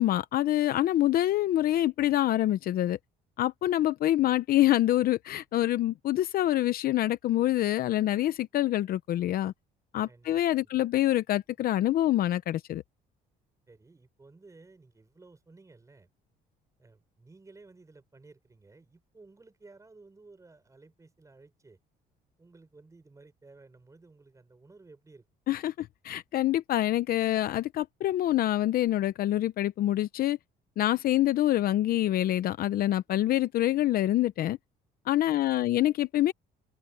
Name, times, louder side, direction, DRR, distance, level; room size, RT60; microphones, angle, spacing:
voice 1, 0.0-3.0 3.4-9.5 9.9-12.8 25.5-30.4 30.8-34.6 35.1-36.3, left 14 dB, 60° left, 0.7 m, -26 dB
voice 2, 10.1-10.7 13.7-16.1 16.8-21.8 22.4-25.3 35.2-35.8, right 3 dB, 20° right, 6.9 m, -55 dB
open air
cardioid pair, 110°, 17 cm